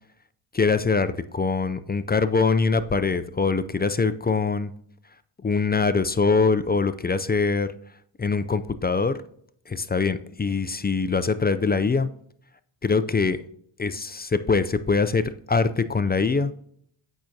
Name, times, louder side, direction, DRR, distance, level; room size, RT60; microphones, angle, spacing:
voice 1, 0.5-4.7 5.4-7.7 8.2-9.2 9.7-12.1 12.8-13.4 13.8-16.5, left 4 dB, 20° left, 12 dB, 0.4 m, -23 dB
8.7 x 5.9 x 2.7 m, 0.65 s
cardioid pair, 70°, 50 cm